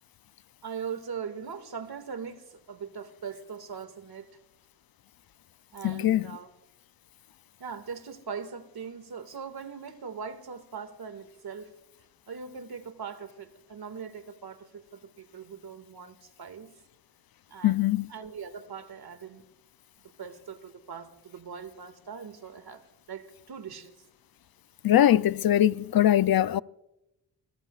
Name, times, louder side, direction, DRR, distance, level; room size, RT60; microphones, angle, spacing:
voice 1, 0.6-4.4 5.7-6.5 7.6-11.7 12.3-16.7 17.5-17.8 18.1-19.4 20.0-24.0, right 6 dB, 60° right, 2.1 m, -41 dB
voice 2, 5.8-6.3 17.6-18.1 24.8-26.6, left 12 dB, 55° left, 0.5 m, -22 dB
25.5 x 23.0 x 2.4 m
cardioid pair, 70°, 43 cm